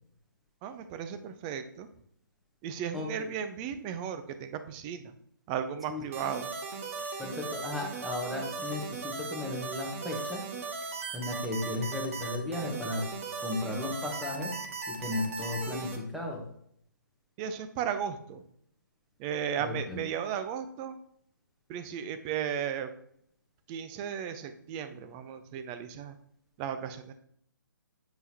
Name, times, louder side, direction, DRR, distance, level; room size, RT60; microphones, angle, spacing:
voice 1, 0.6-1.9 2.6-5.1 5.5-6.5 17.4-18.4 19.2-21.0 21.7-22.9 23.7-26.2 26.6-27.1, right 8 dB, 20° right, 10 dB, 0.5 m, -35 dB
voice 2, 2.9-3.3 5.9-6.0 7.2-10.5 11.1-13.1 13.4-14.6 14.9-16.4 19.6-20.0, left 2 dB, ahead, -1 dB, 1.1 m, -35 dB
sound 1, 6.1-16.0, right 4 dB, 40° right, 1.1 m, -38 dB
7.9 x 5.4 x 2.8 m, 0.69 s
figure-of-eight pair, 135°, 11 cm